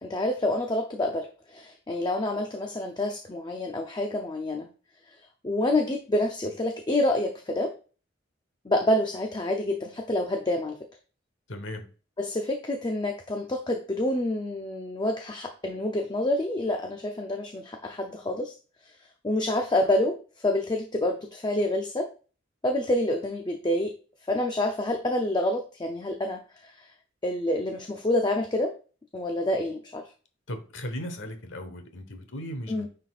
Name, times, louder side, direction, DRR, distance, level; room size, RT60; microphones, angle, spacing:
voice 1, 0.0-4.7 5.4-7.7 8.6-10.8 12.2-18.5 19.2-20.2 20.4-22.1 22.6-23.9 24.3-26.9 27.2-28.7 29.1-30.0 32.7-32.9, left 1 dB, 20° left, 3 dB, 0.6 m, -27 dB
voice 2, 11.5-11.8 30.5-32.9, equal, 75° left, 7 dB, 1.3 m, -37 dB
9.6 x 4.2 x 2.4 m, 0.37 s
head